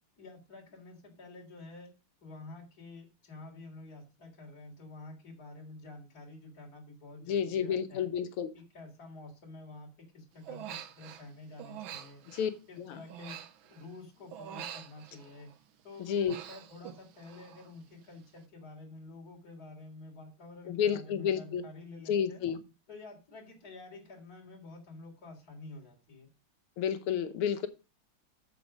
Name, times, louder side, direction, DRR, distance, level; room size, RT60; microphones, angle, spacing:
voice 1, 0.2-1.9 2.2-8.1 8.5-12.2 12.7-15.5 15.8-22.5 22.9-26.3, left 2 dB, 45° left, -2 dB, 4.1 m, -49 dB
voice 2, 7.3-8.5 12.3-12.5 12.8-13.0 16.0-16.4 20.7-21.6 22.1-22.6 26.8-27.7, left 8 dB, 90° left, 10 dB, 1.9 m, -30 dB
Human voice, 10.4-11.3 11.6-14.0 14.3-15.6 15.9-17.7 18.0-18.4, right 10 dB, 70° right, 1.6 m, -46 dB
8.3 x 7.2 x 5.2 m, 0.31 s
omnidirectional pair, 2.4 m